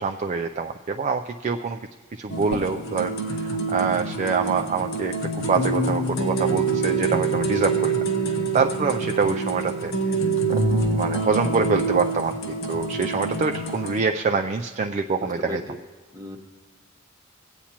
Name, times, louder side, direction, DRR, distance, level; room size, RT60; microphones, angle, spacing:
voice 1, 0.0-1.8 2.1-7.9 8.3-9.9 10.5-10.6 11.0-15.6, right 5 dB, 35° right, 5 dB, 0.3 m, -25 dB
sound 1, 2.3-14.0, right 3 dB, 65° left, 1.0 m, -26 dB
voice 2, 15.1-15.8 16.1-16.4, left 1 dB, 20° right, 2 dB, 1.0 m, -35 dB
22.0 x 8.5 x 2.9 m, 1.4 s
head